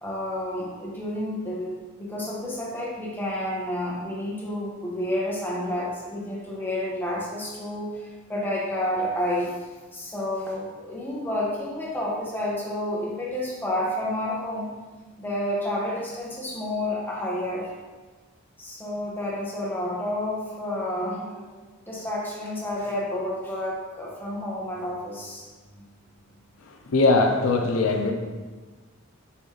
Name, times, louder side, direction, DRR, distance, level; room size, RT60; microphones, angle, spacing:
voice 1, 0.0-1.7 2.0-9.5 9.9-14.7 15.2-17.7 18.6-25.4, left 1 dB, 10° left, -5 dB, 1.1 m, -30 dB
voice 2, 26.6-28.1, left 3 dB, 75° left, 2 dB, 0.6 m, -21 dB
6.9 x 4.0 x 3.4 m, 1.3 s
head